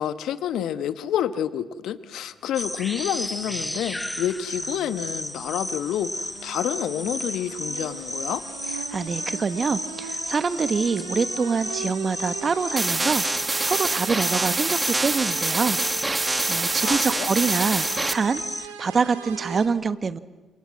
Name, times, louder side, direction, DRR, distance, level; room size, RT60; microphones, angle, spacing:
voice 1, 0.0-8.4 16.8-17.3, left 10 dB, 65° left, 14 dB, 1.1 m, -29 dB
sound 1, 2.5-18.7, left 1 dB, 5° left, 0.9 m, -33 dB
sound 2, 2.9-19.7, right 6 dB, 85° right, 2.2 m, -40 dB
voice 2, 8.9-20.2, right 5 dB, 40° right, 14 dB, 1.3 m, -26 dB
sound 3, 12.8-18.1, right 2 dB, 20° right, 1.6 m, -25 dB
28.0 x 28.0 x 7.7 m, 1.2 s
hypercardioid pair, 45°, 0 cm